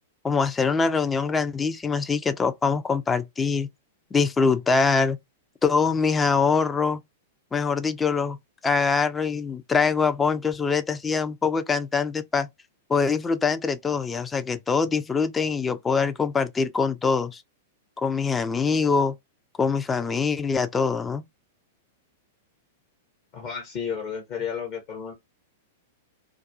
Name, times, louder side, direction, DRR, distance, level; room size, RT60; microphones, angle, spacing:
voice 1, 0.2-3.7 4.1-5.2 5.6-7.0 7.5-8.4 8.6-12.5 12.9-17.4 18.0-19.2 19.6-21.2, left 5 dB, 15° left, 0.3 m, -23 dB
voice 2, 23.3-25.1, left 7 dB, 40° left, 0.7 m, -32 dB
2.3 x 2.3 x 2.4 m
figure-of-eight pair, 100°, 0 cm